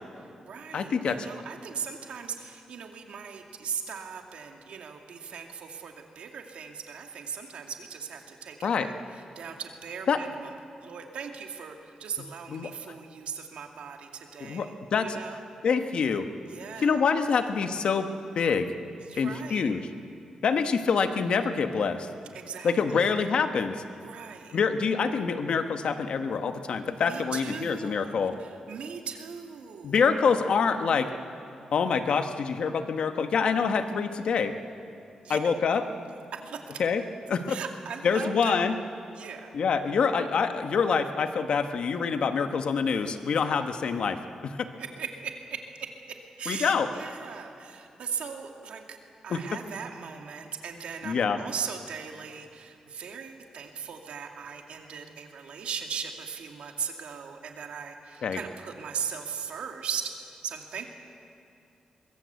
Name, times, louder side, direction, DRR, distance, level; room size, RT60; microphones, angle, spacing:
voice 1, 0.2-15.4 16.5-17.0 19.0-19.7 22.3-23.1 23.9-24.6 27.0-30.0 35.2-35.4 36.3-36.8 37.5-38.7 39.1-39.5 44.8-49.0 49.2-60.9, right 6 dB, 70° right, 3 dB, 2.3 m, -39 dB
voice 2, 0.7-1.2 8.6-8.9 10.1-10.2 12.5-12.7 14.4-15.1 15.6-16.3 16.8-18.7 19.2-19.8 20.4-22.1 22.6-23.8 24.5-28.4 29.8-31.1 31.7-34.5 35.3-35.8 36.8-37.0 37.3-37.6 38.0-38.7 39.5-44.6 46.5-46.9 49.3-49.4 51.0-51.4 58.2-58.4, left 5 dB, 55° left, 8 dB, 1.2 m, -26 dB
23.5 x 21.5 x 8.2 m, 2.6 s
wide cardioid pair, 175°, 2 cm